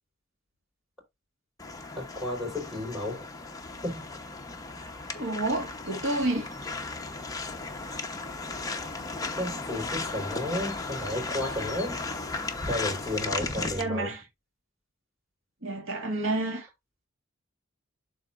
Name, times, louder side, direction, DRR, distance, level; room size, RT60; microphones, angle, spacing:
sound 1, 1.6-13.8, left 3 dB, 15° left, 1.0 m, -35 dB
voice 1, 2.0-3.3 3.8-4.1 9.4-12.0 12.7-14.1, left 1 dB, ahead, 4.5 m, -33 dB
voice 2, 5.1-6.5 13.6-14.2 15.6-16.7, right 2 dB, 70° right, 1.8 m, -30 dB
12.0 x 4.0 x 2.5 m
head